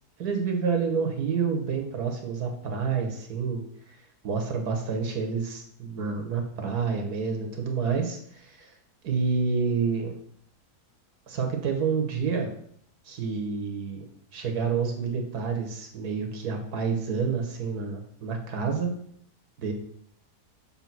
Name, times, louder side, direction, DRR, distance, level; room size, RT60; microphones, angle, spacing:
voice 1, 0.2-4.0 4.2-8.7 9.0-10.1 11.3-12.5 13.0-14.0 14.3-18.9 19.6-19.7, right 5 dB, 75° right, 4 dB, 1.7 m, -28 dB
7.3 x 3.4 x 5.9 m, 0.65 s
omnidirectional pair, 1.7 m